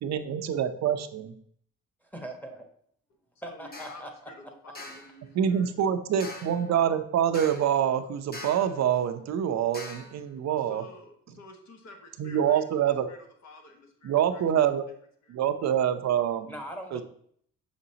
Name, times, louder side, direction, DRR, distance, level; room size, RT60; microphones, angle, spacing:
voice 1, 0.0-1.3 5.3-10.8 12.2-13.1 14.0-14.8 15.3-16.5 16.9-17.0, right 9 dB, 60° right, 8 dB, 0.7 m, -26 dB
voice 2, 2.1-2.6 3.4-4.1 16.5-17.0, right 1 dB, 5° left, 2 dB, 1.1 m, -40 dB
voice 3, 3.3-5.7 10.6-14.4 15.2-15.4, left 2 dB, 65° left, 3 dB, 1.4 m, -50 dB
sound 1, 3.7-4.0 4.7-5.1 6.2-6.7 7.3-7.8 8.3-8.8 9.7-10.2, left 2 dB, 30° left, 1.3 m, -42 dB
6.5 x 5.2 x 2.8 m, 0.64 s
cardioid pair, 90°, 30 cm